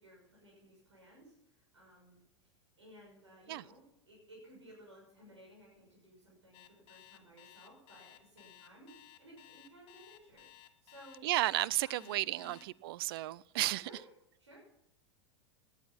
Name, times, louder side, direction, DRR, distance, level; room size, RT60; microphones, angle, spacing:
voice 1, 0.0-1.3 1.7-2.2 2.8-10.5 10.8-11.3 11.8-12.5 13.8-14.1 14.4-14.6, equal, 75° right, 6.9 m, -57 dB
Alarm, 6.5-12.7, left 15 dB, 40° left, 1.7 m, -57 dB
voice 2, 11.2-13.9, right 16 dB, 55° right, 0.5 m, -33 dB
18.0 x 10.5 x 5.9 m
figure-of-eight pair, 90°, 15 cm